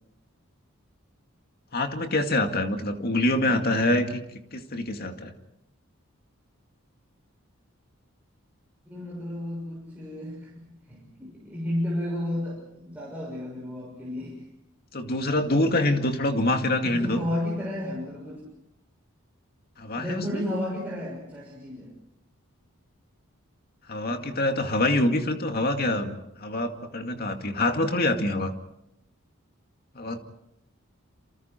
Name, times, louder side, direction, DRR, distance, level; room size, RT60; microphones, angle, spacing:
voice 1, 1.7-4.2 4.5-5.3 14.9-17.2 19.8-20.4 23.9-28.5 30.0-30.2, left 1 dB, 45° left, 5 dB, 2.2 m, -25 dB
voice 2, 8.9-14.4 16.8-18.4 19.9-21.9 24.0-24.2, left 1 dB, 5° right, -5 dB, 6.4 m, -32 dB
28.5 x 27.5 x 4.5 m, 0.80 s
head